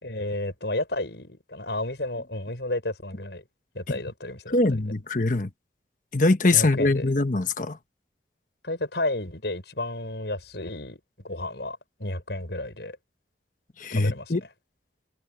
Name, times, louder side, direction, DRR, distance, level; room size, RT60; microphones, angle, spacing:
voice 1, 0.0-3.4 3.7-4.8 6.5-7.1 8.6-11.0 11.2-13.0 13.9-14.5, left 2 dB, 75° left, 5.9 m, -32 dB
voice 2, 4.5-5.5 6.1-7.8 13.8-14.4, left 2 dB, 45° left, 1.1 m, -22 dB
head